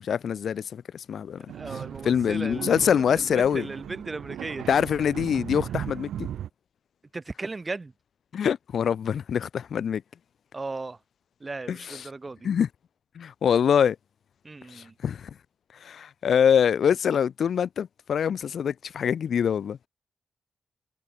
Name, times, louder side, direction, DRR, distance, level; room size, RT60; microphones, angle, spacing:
voice 1, 0.0-1.4 2.0-3.7 4.7-6.3 8.3-10.0 11.7-12.0 12.4-12.7 13.2-14.0 14.7-15.3 15.8-19.8, left 8 dB, 75° left, 0.5 m, -24 dB
voice 2, 1.4-4.8 7.1-7.9 10.5-11.0 11.4-12.5 14.4-14.9, right 3 dB, 35° right, 2.2 m, -37 dB
sound 1, 1.5-6.5, right 10 dB, 85° right, 0.4 m, -37 dB
supercardioid pair, 45°, 0 cm